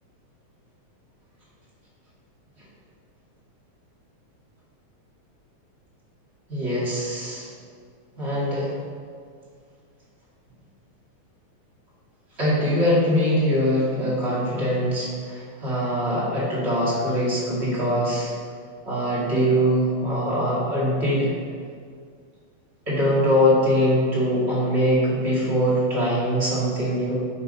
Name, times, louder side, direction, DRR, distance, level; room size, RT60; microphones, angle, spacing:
voice 1, 6.5-7.5 8.2-8.7 12.4-18.3 18.9-21.3 22.9-27.1, equal, 20° right, -8 dB, 2.4 m, -22 dB
9.9 x 4.5 x 5.4 m, 2.1 s
omnidirectional pair, 3.4 m